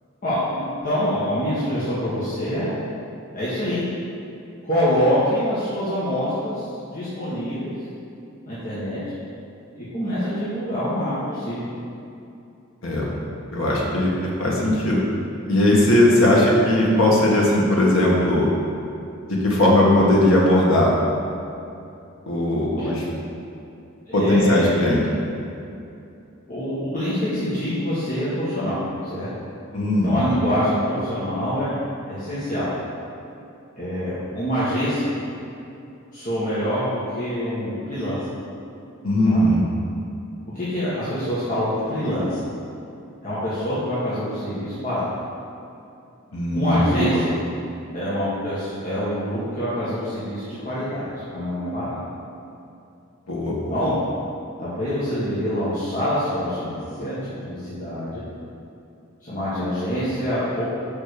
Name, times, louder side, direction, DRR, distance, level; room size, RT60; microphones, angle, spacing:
voice 1, 0.2-2.8 3.3-3.8 4.6-7.7 8.4-9.0 9.7-11.7 22.7-22.9 24.1-24.6 26.5-28.8 29.1-29.3 30.0-31.8 32.1-32.7 33.8-35.1 36.1-38.2 39.2-39.4 40.5-42.4 43.2-45.1 46.5-47.3 47.9-52.0 53.7-54.0 54.6-58.2 59.2-60.6, equal, 40° left, -12 dB, 1.7 m, -25 dB
voice 2, 13.5-14.1 14.4-15.0 15.5-18.5 19.3-20.9 22.3-23.0 24.1-25.0 29.7-30.2 39.0-39.6 46.3-47.2 53.3-53.7, left 1 dB, 70° left, -4 dB, 1.6 m, -18 dB
5.4 x 5.2 x 6.6 m, 2.7 s
head